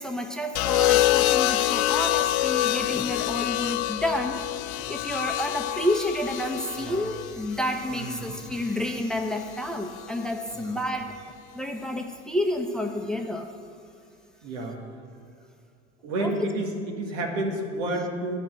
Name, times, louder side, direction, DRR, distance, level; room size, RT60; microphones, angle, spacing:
voice 1, 0.0-4.4 4.9-11.1 11.5-13.5 16.2-16.5, left 1 dB, ahead, 3 dB, 0.9 m, -30 dB
sound 1, 0.5-8.7 9.9-10.3, left 15 dB, 75° left, 0.5 m, -26 dB
voice 2, 6.8-7.1 7.9-8.4 10.5-10.8 14.4-14.8 16.0-18.4, right 1 dB, 70° right, 2 dB, 1.8 m, -31 dB
10.5 x 5.4 x 7.8 m, 2.4 s
hypercardioid pair, 70°, 33 cm